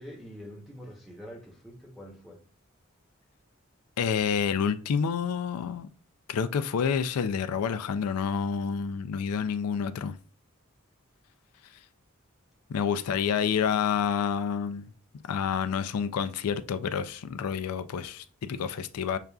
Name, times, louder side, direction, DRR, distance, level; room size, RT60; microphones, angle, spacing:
voice 1, 0.0-2.4, equal, ahead, 0.8 m, -45 dB
voice 2, 4.0-5.9 6.3-10.2 12.7-14.9 15.3-19.2, left 7 dB, 90° left, 0.4 m, -28 dB
6.6 x 2.4 x 2.3 m
head